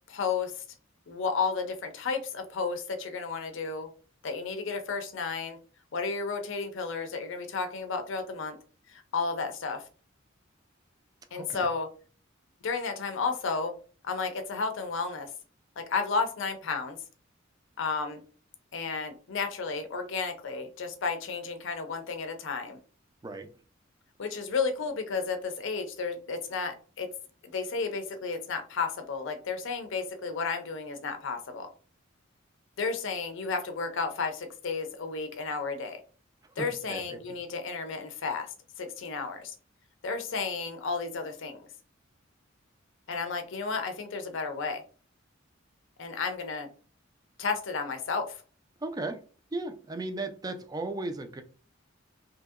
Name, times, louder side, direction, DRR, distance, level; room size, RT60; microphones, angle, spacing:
voice 1, 0.1-0.6 1.1-3.9 4.2-5.6 5.9-8.6 8.9-9.8 11.3-11.9 12.6-13.7 14.0-15.3 15.8-17.0 17.8-18.2 18.7-22.8 24.2-27.1 27.4-31.7 32.8-36.0 36.6-39.5 40.0-41.7 43.1-44.8 46.0-46.7 47.4-48.4, left 4 dB, 70° left, 7 dB, 0.5 m, -32 dB
voice 2, 11.3-11.7 23.2-23.5 36.9-37.0 48.8-49.2 49.5-51.4, right 2 dB, 20° right, 8 dB, 0.3 m, -35 dB
2.8 x 2.7 x 2.4 m, 0.39 s
head